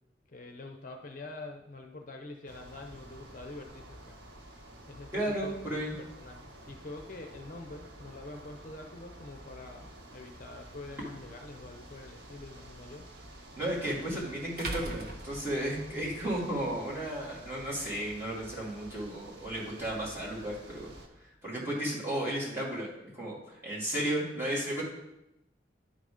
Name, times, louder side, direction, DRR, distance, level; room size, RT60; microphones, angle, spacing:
voice 1, 0.3-4.2 4.9-5.5 6.0-13.1 14.1-14.5, left 2 dB, 45° left, 3 dB, 0.6 m, -46 dB
sound 1, 2.5-21.1, right 1 dB, 75° right, 1.3 m, -50 dB
voice 2, 5.1-5.9 13.6-20.9 21.2-24.8, right 1 dB, 15° right, -6 dB, 2.6 m, -34 dB
sound 2, 10.7-10.8 13.4-13.5 14.6-16.2, right 1 dB, 55° right, 1.2 m, -39 dB
11.0 x 4.0 x 5.0 m, 0.89 s
head